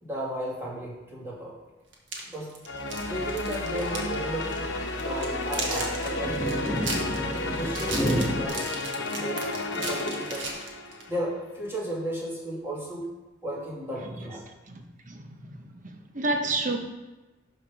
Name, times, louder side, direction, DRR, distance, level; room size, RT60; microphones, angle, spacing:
voice 1, 0.0-1.5 2.2-2.5 3.1-4.6 5.0-7.0 7.5-9.5 9.7-10.5 11.1-13.0 13.4-14.4, right 1 dB, 15° right, -5 dB, 2.5 m, -34 dB
sound 1, 1.9-4.2 4.4-4.6 5.0-11.1, right 3 dB, 90° right, 1.9 m, -36 dB
sound 2, 2.7-11.2, left 2 dB, 80° left, 0.9 m, -32 dB
sound 3, 3.0-8.4, equal, 15° left, 2.4 m, -32 dB
voice 2, 14.6-16.8, right 2 dB, 45° right, 4 dB, 1.1 m, -31 dB
12.0 x 4.4 x 5.2 m, 1.1 s
head